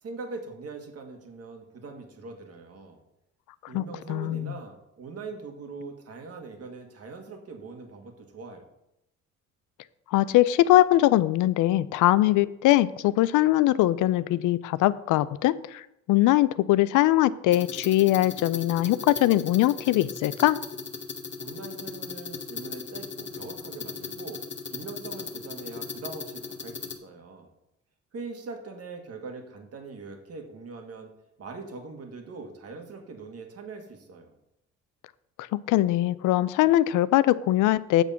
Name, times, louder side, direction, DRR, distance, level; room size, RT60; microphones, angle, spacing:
voice 1, 0.0-3.0 3.7-8.6 21.4-24.4 24.7-27.5 28.1-31.1 31.4-34.3, right 3 dB, 55° right, 4 dB, 1.8 m, -42 dB
voice 2, 4.1-4.5 10.1-15.8 16.1-20.6 35.7-38.0, left 15 dB, 90° left, 17 dB, 0.5 m, -21 dB
sound 1, 17.5-27.0, left 5 dB, 40° left, 1.2 m, -38 dB
8.1 x 6.1 x 5.7 m, 0.84 s
cardioid pair, 90°, 30 cm